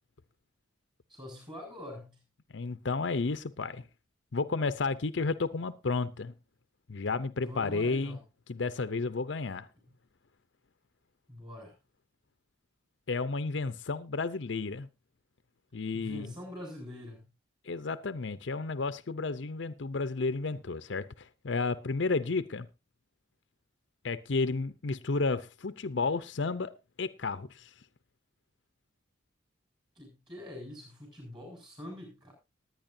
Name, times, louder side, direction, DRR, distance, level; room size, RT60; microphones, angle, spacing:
voice 1, 1.1-2.2 7.4-8.2 11.3-11.7 15.9-17.2 30.0-32.3, left 1 dB, 25° right, 7.8 m, -44 dB
voice 2, 2.5-3.8 4.3-6.3 6.9-8.2 8.5-9.7 13.1-14.9 15.7-16.3 17.7-22.7 24.0-26.7 27.0-27.7, left 3 dB, 70° left, 0.6 m, -32 dB
19.5 x 9.6 x 2.7 m
head